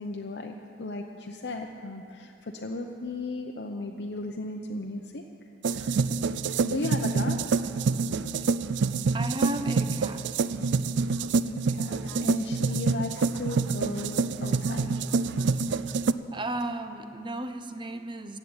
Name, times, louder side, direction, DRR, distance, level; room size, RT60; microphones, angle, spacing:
voice 1, 0.0-5.2 5.7-6.0 6.6-7.6 11.5-15.0, left 2 dB, 65° left, 2 dB, 0.7 m, -35 dB
sound 1, 5.6-16.1, right 4 dB, 80° right, 0.4 m, -27 dB
voice 2, 9.1-10.2 16.3-18.4, right 1 dB, 25° right, 8 dB, 0.8 m, -34 dB
15.0 x 8.1 x 8.8 m, 2.6 s
head